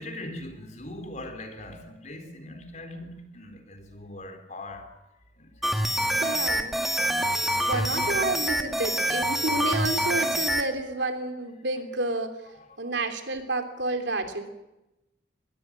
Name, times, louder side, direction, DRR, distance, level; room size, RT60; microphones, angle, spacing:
voice 1, 0.0-5.0 5.4-6.1 7.7-8.3 12.7-12.8, left 1 dB, 40° left, 3.9 m, -41 dB
sound 1, 5.6-10.7, equal, ahead, 2.0 m, -26 dB
voice 2, 6.2-6.8 7.5-12.4 12.8-14.5, right 2 dB, 70° right, 3.2 m, -30 dB
23.5 x 20.5 x 7.5 m
head